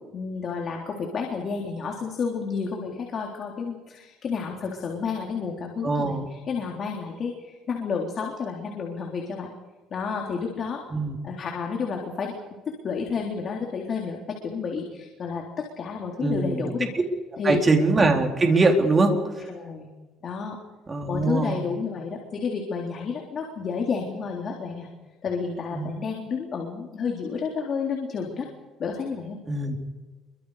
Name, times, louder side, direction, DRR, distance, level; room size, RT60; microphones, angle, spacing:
voice 1, 0.0-9.5 9.9-10.8 11.2-12.3 12.8-16.9 17.4-17.7 19.1-19.2 19.5-19.9 20.2-20.6 21.1-24.9 25.2-28.5 28.8-29.4, left 5 dB, 40° left, 0 dB, 3.8 m, -30 dB
voice 2, 5.8-6.3 10.9-11.2 16.2-16.6 17.4-19.1 20.9-21.6 25.7-25.9 29.5-29.7, right 3 dB, 20° right, 2 dB, 3.8 m, -22 dB
27.5 x 24.5 x 5.1 m, 1.3 s
cardioid pair, 140°, 0 cm